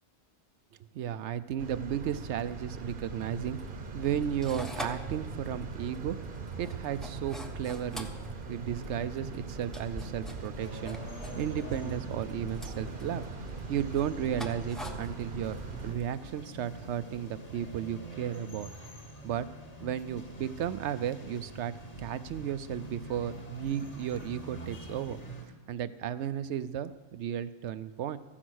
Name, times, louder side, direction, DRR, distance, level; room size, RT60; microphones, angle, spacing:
voice 1, 0.9-3.6 3.9-6.2 6.6-8.1 8.5-11.0 11.4-13.2 13.7-15.6 15.8-18.7 19.2-19.5 19.8-21.7 22.0-25.2 25.7-28.2, right 9 dB, 75° right, 14 dB, 0.9 m, -34 dB
sound 1, 1.6-15.9, right 4 dB, 50° right, 1.1 m, -41 dB
sound 2, 3.4-16.1, equal, ahead, 0.8 m, -46 dB
sound 3, 10.6-25.4, right 1 dB, 35° left, 1.6 m, -46 dB
14.5 x 9.9 x 6.3 m, 1.2 s
omnidirectional pair, 1.2 m